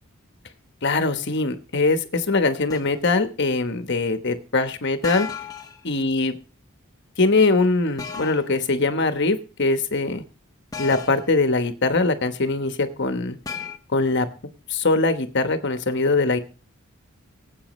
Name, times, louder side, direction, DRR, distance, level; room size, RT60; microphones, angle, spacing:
voice 1, 0.8-5.3 5.8-6.3 7.2-10.2 10.8-13.4 13.9-14.3 14.7-16.4, left 3 dB, 55° left, 8 dB, 1.2 m, -22 dB
sound 1, 2.7-3.0 5.0-5.8 8.0-8.5 10.7-11.3 13.5-13.8, left 6 dB, 15° left, 0.8 m, -34 dB
18.5 x 8.4 x 3.2 m, 0.35 s
head